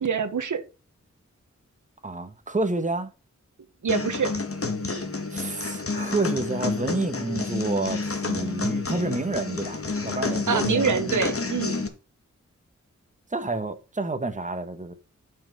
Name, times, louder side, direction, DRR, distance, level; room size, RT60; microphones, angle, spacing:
voice 1, 0.0-0.6 3.8-4.3 10.5-11.8, right 6 dB, 85° right, 1.3 m, -25 dB
voice 2, 2.0-3.1 5.3-11.2 13.3-14.9, right 2 dB, 25° right, 1.3 m, -29 dB
sound 1, 3.9-11.9, left 3 dB, 50° left, 1.8 m, -29 dB
8.8 x 5.9 x 5.4 m
cardioid pair, 50°, 30 cm